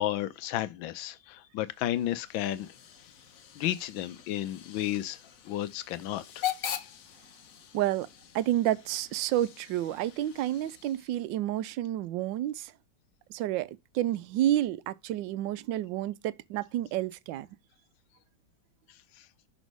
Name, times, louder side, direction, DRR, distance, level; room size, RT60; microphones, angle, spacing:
voice 1, 0.0-2.7 3.6-5.2 5.4-6.5, left 13 dB, 85° left, 1.5 m, -32 dB
Hiss / Train / Alarm, 1.7-11.3, left 11 dB, 55° left, 1.0 m, -42 dB
voice 2, 7.7-8.1 8.3-12.7 13.3-13.7 13.9-17.5, right 13 dB, 75° right, 1.3 m, -30 dB
6.3 x 4.1 x 5.2 m
omnidirectional pair, 2.1 m